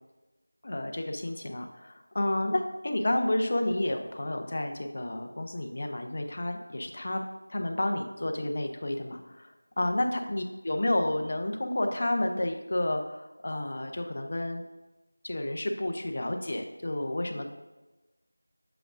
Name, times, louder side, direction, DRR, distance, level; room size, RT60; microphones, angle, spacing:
voice 1, 0.6-7.2 7.5-14.6 15.2-17.5, left 1 dB, 35° left, 4 dB, 0.6 m, -30 dB
7.8 x 6.2 x 2.5 m, 1.1 s
figure-of-eight pair, 175°, 0 cm